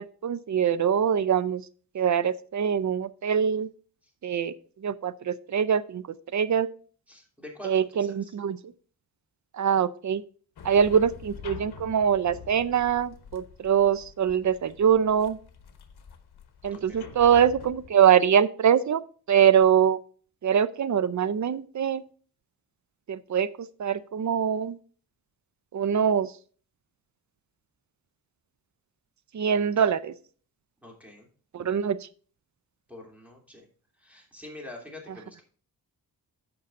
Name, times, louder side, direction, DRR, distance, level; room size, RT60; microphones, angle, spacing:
voice 1, 0.0-1.6 1.9-3.7 4.2-4.5 4.8-6.0 6.3-6.7 7.6-8.7 9.5-10.2 10.6-15.4 16.6-19.0 19.3-20.0 20.4-22.0 23.1-24.8 25.7-26.3 29.3-30.1 31.5-32.0, right 8 dB, 50° right, 16 dB, 0.6 m, -23 dB
voice 2, 7.1-8.3 16.7-17.2 29.8-29.9 30.8-31.3 32.9-33.7 34.0-35.4, left 2 dB, 5° right, 0 dB, 2.9 m, -46 dB
sound 1, 10.6-17.9, left 6 dB, 75° left, 1.1 m, -46 dB
14.5 x 5.5 x 2.5 m, 0.42 s
wide cardioid pair, 95°, 39 cm